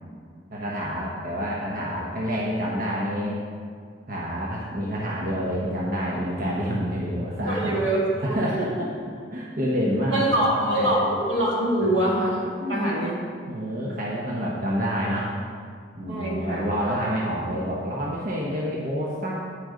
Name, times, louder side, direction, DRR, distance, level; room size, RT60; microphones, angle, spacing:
voice 1, 0.5-3.4 4.1-7.7 8.2-8.9 9.3-10.3 10.5-10.9 12.6-13.1 13.5-15.3 15.9-19.3, equal, 50° right, -5 dB, 1.1 m, -28 dB
voice 2, 7.4-8.4 10.1-13.1 16.1-16.7, right 1 dB, 80° right, -4 dB, 2.4 m, -24 dB
10.0 x 6.5 x 5.1 m, 2.2 s
head